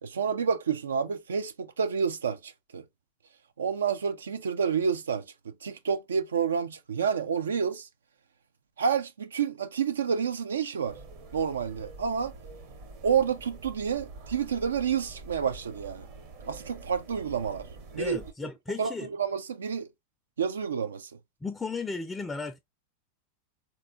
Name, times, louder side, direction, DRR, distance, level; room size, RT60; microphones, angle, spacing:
voice 1, 0.0-2.8 3.6-5.2 5.6-7.9 8.8-11.0 11.3-12.3 13.0-16.1 16.5-17.7 17.9-18.2 18.8-18.9 19.2-19.9 20.4-21.1, right 6 dB, 85° right, 0.3 m, -29 dB
sound 1, 10.8-18.3, right 3 dB, 55° right, 0.9 m, -46 dB
voice 2, 18.0-19.1 21.4-22.6, left 4 dB, 15° left, 0.3 m, -35 dB
3.5 x 2.3 x 2.4 m
hypercardioid pair, 100°, 0 cm